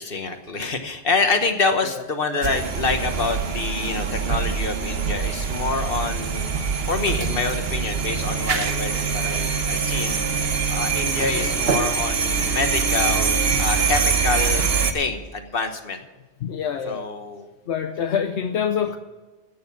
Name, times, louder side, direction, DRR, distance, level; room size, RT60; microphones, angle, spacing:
voice 1, 0.0-6.5 6.9-10.2 10.7-14.6 14.9-16.0 16.8-17.5, left 3 dB, 50° left, 7 dB, 1.4 m, -26 dB
sound 1, 2.4-14.9, right 6 dB, 60° right, 1.2 m, -24 dB
voice 2, 16.4-17.1 17.7-19.0, left 8 dB, 75° left, 7 dB, 1.0 m, -26 dB
16.5 x 6.6 x 7.4 m, 1.2 s
omnidirectional pair, 1.2 m